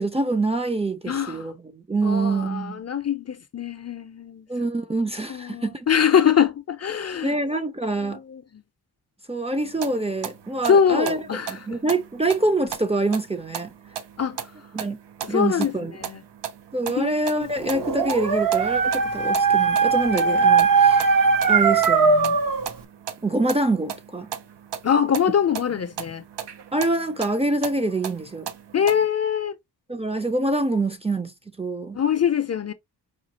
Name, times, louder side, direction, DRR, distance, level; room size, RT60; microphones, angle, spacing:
voice 1, 0.0-2.8 4.5-5.9 7.2-8.2 9.3-11.2 11.5-13.7 14.7-15.0 15.3-15.9 16.7-21.0 21.5-22.4 23.2-24.3 26.7-28.5 29.9-31.3 31.6-32.0, right 2 dB, 15° right, 0.5 m, -25 dB
voice 2, 1.1-1.5 2.0-4.5 5.3-7.4 8.0-8.6 10.7-11.8 14.2-14.5 15.2-15.7 16.0-16.2 16.9-17.5 24.8-26.2 28.7-29.6 31.9-32.7, left 8 dB, 40° left, 0.5 m, -23 dB
sound 1, 9.6-29.1, right 9 dB, 90° right, 0.8 m, -38 dB
Dog, 17.6-22.7, right 5 dB, 55° right, 0.7 m, -19 dB
4.9 x 2.3 x 2.8 m
wide cardioid pair, 110°, 41 cm